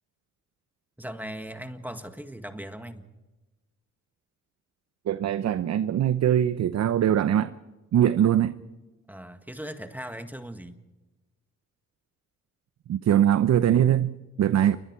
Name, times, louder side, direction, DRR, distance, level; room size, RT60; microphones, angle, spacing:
voice 1, 1.0-3.1 9.1-10.8, right 1 dB, 5° right, 1.7 m, -39 dB
voice 2, 5.1-7.5 7.9-8.6 12.9-14.8, right 10 dB, 60° right, 0.9 m, -22 dB
29.0 x 24.0 x 4.6 m
cardioid pair, 90°, 30 cm